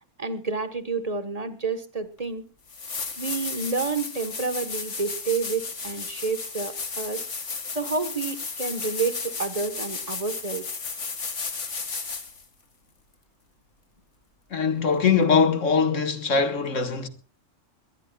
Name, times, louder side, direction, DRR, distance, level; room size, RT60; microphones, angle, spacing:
voice 1, 0.2-2.4 3.2-7.2 7.7-10.7, right 4 dB, 30° right, 1.3 m, -29 dB
sound 1, 2.2-2.3 2.7-12.4 15.2-15.3, left 4 dB, 70° left, 2.2 m, -34 dB
voice 2, 14.5-17.1, left 5 dB, 90° left, 1.9 m, -22 dB
23.0 x 18.5 x 2.3 m
omnidirectional pair, 1.3 m